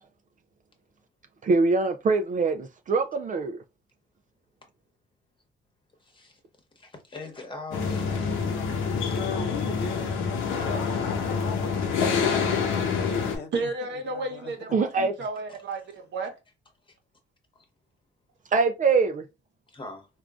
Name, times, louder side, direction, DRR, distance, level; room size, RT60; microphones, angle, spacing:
voice 1, 1.4-3.6 14.7-15.1 18.5-19.2, right 4 dB, 40° right, 0.4 m, -23 dB
voice 2, 6.0-6.4 6.7-8.5 9.0-9.3 16.9-17.0 17.5-17.6 19.7-20.1, left 2 dB, 25° left, 1.1 m, -42 dB
sound 1, 7.7-13.4, left 5 dB, 90° left, 0.8 m, -27 dB
voice 3, 9.0-13.5 14.0-14.5, left 4 dB, 55° left, 0.7 m, -38 dB
voice 4, 13.5-16.3, right 3 dB, 65° right, 0.9 m, -32 dB
3.6 x 2.3 x 2.4 m
cardioid pair, 90°, 20 cm